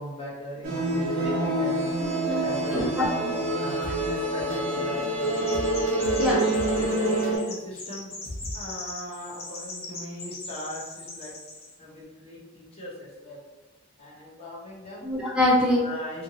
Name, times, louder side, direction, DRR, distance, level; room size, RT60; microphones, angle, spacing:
voice 1, 0.0-1.9 2.4-3.0 3.5-5.6 6.1-8.1 8.5-11.3 11.8-13.4 14.0-15.1 15.8-16.2, left 1 dB, 30° left, -6 dB, 0.9 m, -38 dB
sound 1, 0.6-7.4, right 1 dB, 65° right, 1.0 m, -26 dB
voice 2, 1.2-1.5 2.2-2.4 2.7-3.7 6.2-6.4 15.0-15.8, left 1 dB, 5° right, -7 dB, 0.8 m, -25 dB
sound 2, 3.6-4.2 4.5-4.8 5.0-5.3 5.5-7.3 7.7-7.8 8.2-8.6, left 1 dB, 45° left, 1.3 m, -38 dB
Chirp tweet, 5.2-11.7, left 2 dB, 75° left, 1.1 m, -40 dB
2.8 x 2.6 x 2.7 m, 1.2 s
head